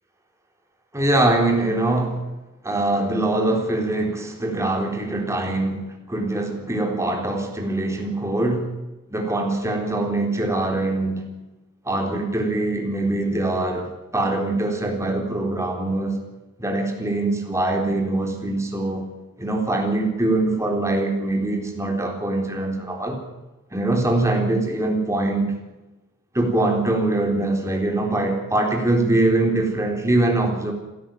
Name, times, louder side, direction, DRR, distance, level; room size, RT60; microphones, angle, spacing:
voice 1, 0.9-2.2 2.6-8.7 9.1-11.2 11.9-16.2 16.6-19.1 19.4-23.2 23.7-25.5 26.3-30.7, right 2 dB, 15° right, 2 dB, 3.9 m, -23 dB
29.5 x 12.5 x 9.2 m, 1.1 s
head